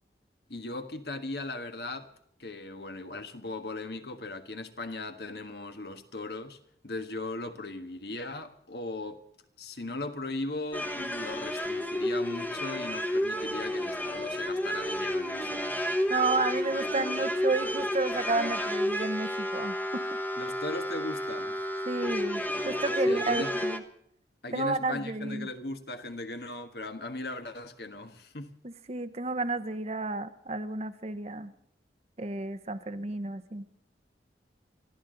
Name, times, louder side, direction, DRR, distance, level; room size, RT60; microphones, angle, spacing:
voice 1, 0.5-2.1 2.4-9.2 9.6-15.6 20.4-21.6 23.1-23.5 24.4-28.6, left 2 dB, 65° left, 1.5 m, -38 dB
sound 1, 10.7-23.8, equal, 10° left, 1.1 m, -31 dB
voice 2, 16.1-20.0 21.9-23.8 24.5-25.5 28.6-31.5 32.2-33.6, right 3 dB, 35° right, 0.8 m, -31 dB
25.0 x 14.0 x 3.9 m
head